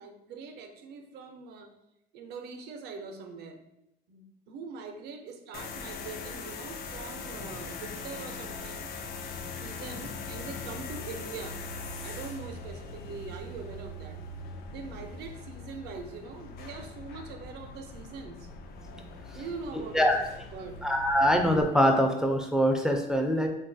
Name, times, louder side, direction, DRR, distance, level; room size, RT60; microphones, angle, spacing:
voice 1, 0.0-1.7 2.1-3.6 4.1-8.9 9.6-11.6 12.0-14.2 14.7-18.5 19.3-20.1 20.5-20.8, right 4 dB, 75° right, 5 dB, 0.5 m, -42 dB
sound 1, 5.5-21.6, left 3 dB, 65° left, 0.4 m, -41 dB
voice 2, 20.8-23.5, equal, 5° right, 3 dB, 0.3 m, -23 dB
3.6 x 2.3 x 2.6 m, 0.83 s
cardioid pair, 110°, 17 cm